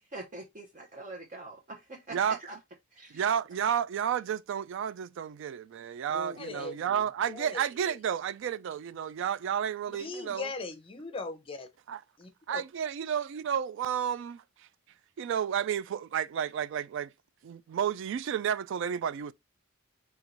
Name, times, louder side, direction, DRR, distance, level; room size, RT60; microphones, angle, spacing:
voice 1, 0.0-2.6 2.9-3.2 6.1-7.1, right 2 dB, 40° right, 0.8 m, -44 dB
voice 2, 3.1-10.5 11.9-12.0 12.5-14.4 15.2-17.1 17.4-19.3, right 8 dB, 65° right, 0.3 m, -31 dB
voice 3, 6.4-6.8 7.3-7.9 10.0-11.7 12.2-12.6, left 3 dB, 25° left, 0.7 m, -39 dB
4.4 x 2.3 x 3.8 m
head